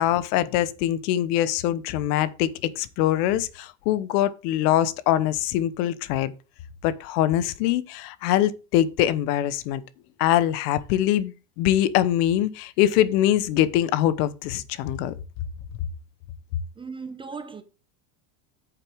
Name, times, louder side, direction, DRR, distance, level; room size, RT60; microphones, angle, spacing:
voice 1, 0.0-6.3 6.8-9.8 10.2-15.1, left 12 dB, 75° left, 1.1 m, -23 dB
voice 2, 16.8-17.6, right 5 dB, 10° right, 0.6 m, -37 dB
9.3 x 7.5 x 3.5 m
cardioid pair, 160°, 48 cm